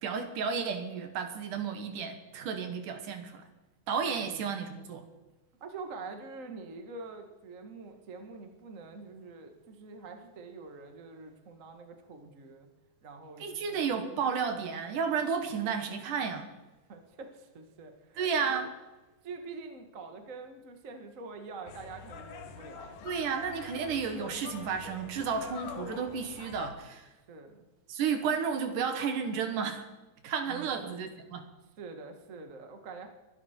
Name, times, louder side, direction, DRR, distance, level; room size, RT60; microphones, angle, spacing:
voice 1, 0.0-3.4 3.9-5.0 13.4-16.5 18.2-18.7 23.0-27.1 27.9-29.9 30.2-31.4, right 6 dB, 70° right, 7 dB, 2.9 m, -32 dB
voice 2, 4.2-4.6 5.6-12.7 13.0-13.8 16.9-18.6 19.2-23.0 27.3-27.7 30.5-30.9 31.8-33.1, right 4 dB, 40° right, 5 dB, 1.2 m, -45 dB
sound 1, 21.7-26.7, left 5 dB, 65° left, 2.5 m, -45 dB
23.0 x 11.5 x 4.5 m, 1.1 s
omnidirectional pair, 4.0 m